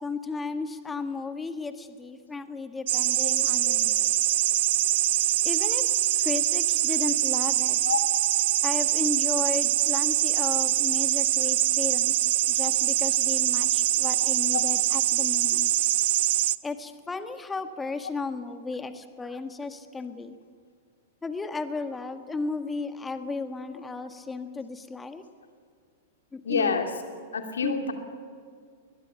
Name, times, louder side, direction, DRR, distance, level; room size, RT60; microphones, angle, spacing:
voice 1, 0.0-4.1 5.4-5.8 6.2-7.8 8.6-15.7 16.6-20.4 21.2-25.2 26.3-26.8 27.6-27.9, left 3 dB, 10° left, 9 dB, 1.6 m, -34 dB
sound 1, 2.9-16.6, right 14 dB, 55° right, 0.5 m, -24 dB
voice 2, 7.8-8.2 14.5-14.6 26.4-26.9 27.3-27.9, left 5 dB, 70° left, 5 dB, 2.8 m, -27 dB
22.0 x 21.0 x 7.1 m, 2.1 s
figure-of-eight pair, 100°, 0 cm